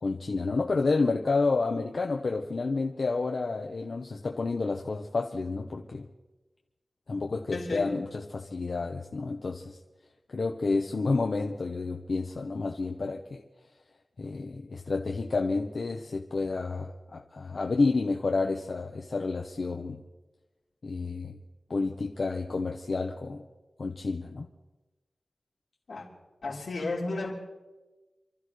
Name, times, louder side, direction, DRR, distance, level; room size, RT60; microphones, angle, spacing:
voice 1, 0.0-6.1 7.1-9.8 10.3-13.4 14.2-20.0 20.8-21.4 21.7-23.4 23.8-24.5, left 3 dB, 65° left, 2 dB, 1.0 m, -30 dB
voice 2, 7.5-8.0 25.9-26.1 26.4-27.3, left 2 dB, 85° left, -4 dB, 3.8 m, -33 dB
28.5 x 13.0 x 3.3 m, 1.1 s
wide cardioid pair, 80°, 0 cm